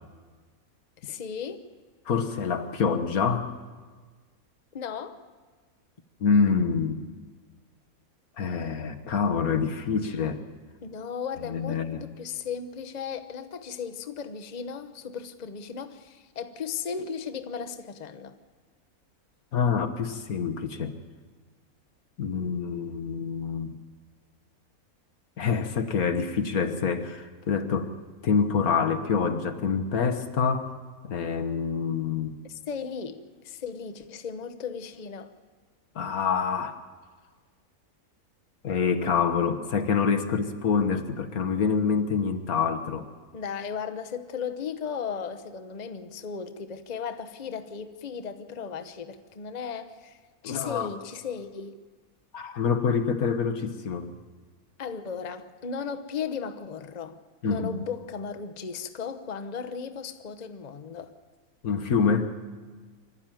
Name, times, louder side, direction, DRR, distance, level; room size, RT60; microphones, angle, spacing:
voice 1, 1.0-1.6 4.7-5.2 10.8-18.4 32.4-33.2 33.4-35.3 43.3-51.7 54.8-57.2 57.4-61.1, left 6 dB, 35° left, 0.9 m, -36 dB
voice 2, 2.1-3.5 6.2-7.0 8.4-10.4 11.4-12.1 19.5-20.9 22.2-23.7 25.4-27.9 28.2-30.7 31.0-32.4 36.0-36.8 38.6-43.1 50.4-50.9 52.3-54.1 57.4-57.7 61.6-62.3, left 5 dB, 75° left, 1.8 m, -26 dB
24.5 x 13.0 x 9.1 m
omnidirectional pair, 1.5 m